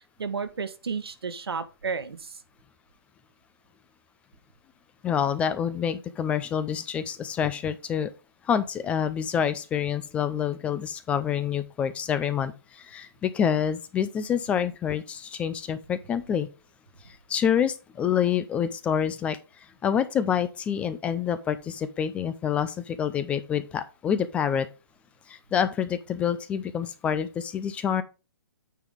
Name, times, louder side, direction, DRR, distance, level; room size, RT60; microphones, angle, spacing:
voice 1, 0.0-2.4, right 5 dB, 90° right, 1.3 m, -32 dB
voice 2, 5.0-8.1 8.5-16.5 17.3-19.4 19.8-24.7 25.3-28.0, left 8 dB, 10° left, 0.3 m, -27 dB
9.1 x 3.9 x 5.0 m
hypercardioid pair, 150°, 13 cm